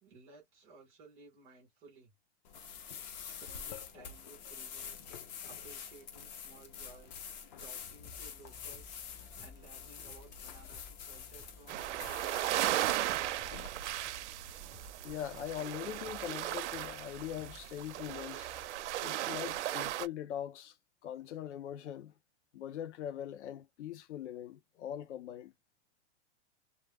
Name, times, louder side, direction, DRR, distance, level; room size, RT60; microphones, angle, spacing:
voice 1, 0.0-2.1 2.8-5.0 5.4-7.2 7.6-13.3, right 3 dB, 10° right, 0.3 m, -58 dB
sound 1, 2.4-13.7, left 7 dB, 40° left, 0.6 m, -47 dB
sound 2, 8.0-18.6, left 2 dB, 10° left, 0.8 m, -57 dB
sound 3, 11.7-20.1, right 14 dB, 85° right, 0.5 m, -36 dB
voice 2, 15.0-18.5 19.0-20.8 21.0-22.1 22.5-25.5, left 10 dB, 85° left, 0.7 m, -41 dB
2.2 x 2.1 x 3.4 m
supercardioid pair, 170°, 34 cm